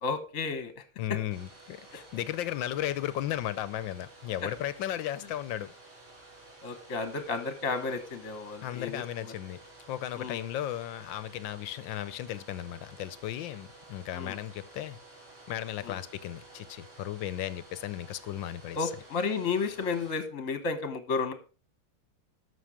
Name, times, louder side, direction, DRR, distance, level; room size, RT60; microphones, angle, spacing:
voice 1, 0.0-0.8 6.6-9.0 10.2-10.4 14.1-14.4 15.8-16.0 18.7-21.3, left 4 dB, 45° left, 1.4 m, -32 dB
voice 2, 1.0-5.7 8.6-9.6 9.9-15.0 15.5-18.9, left 12 dB, 70° left, 1.3 m, -35 dB
Domestic sounds home sounds, 1.3-20.1, right 2 dB, 35° right, 4.1 m, -53 dB
13.0 x 6.2 x 4.9 m
omnidirectional pair, 2.3 m